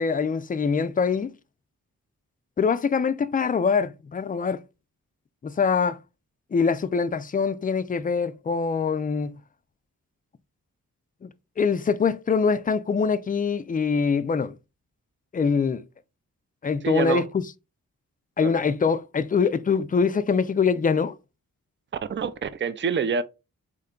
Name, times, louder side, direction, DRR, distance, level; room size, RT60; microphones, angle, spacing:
voice 1, 0.0-1.3 2.6-4.6 5.4-6.0 6.5-9.4 11.2-11.3 11.6-14.5 15.3-15.9 16.6-17.3 18.4-21.2, left 5 dB, 25° left, 0.4 m, -24 dB
voice 2, 16.8-17.2 18.4-18.6 22.1-23.2, right 6 dB, 35° right, 0.5 m, -26 dB
3.6 x 2.2 x 3.7 m
cardioid pair, 55°, 34 cm